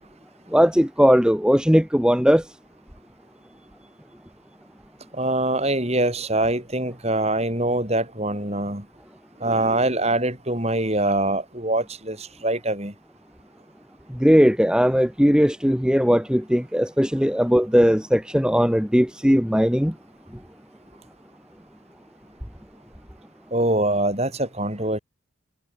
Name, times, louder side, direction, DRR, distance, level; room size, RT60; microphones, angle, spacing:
voice 1, 0.5-2.5 14.1-20.0, equal, 5° right, 2.0 m, -18 dB
voice 2, 5.1-8.8 9.4-12.9 23.5-25.0, right 1 dB, 30° right, 6.8 m, -24 dB
head